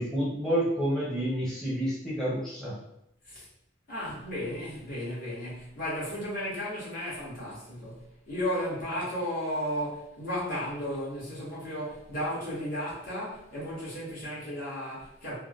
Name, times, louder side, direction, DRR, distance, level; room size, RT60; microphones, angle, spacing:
voice 1, 0.0-2.8, equal, 5° left, -8 dB, 0.8 m, -29 dB
voice 2, 3.9-15.4, equal, 50° left, -9 dB, 1.4 m, -34 dB
3.4 x 2.2 x 2.4 m, 0.82 s
head